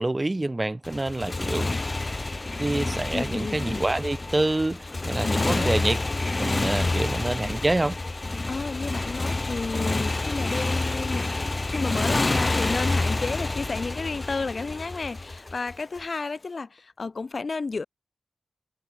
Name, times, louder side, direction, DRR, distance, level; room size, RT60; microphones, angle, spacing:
voice 1, 0.0-2.0 2.6-6.0 6.4-8.0, right 2 dB, 25° right, 4.2 m, -27 dB
Motorcycle, 0.8-16.0, left 2 dB, 35° left, 6.3 m, -28 dB
voice 2, 3.1-3.8 5.2-5.7 8.5-11.3 11.7-17.8, left 4 dB, 55° left, 2.5 m, -32 dB
cardioid pair, 60°, 0 cm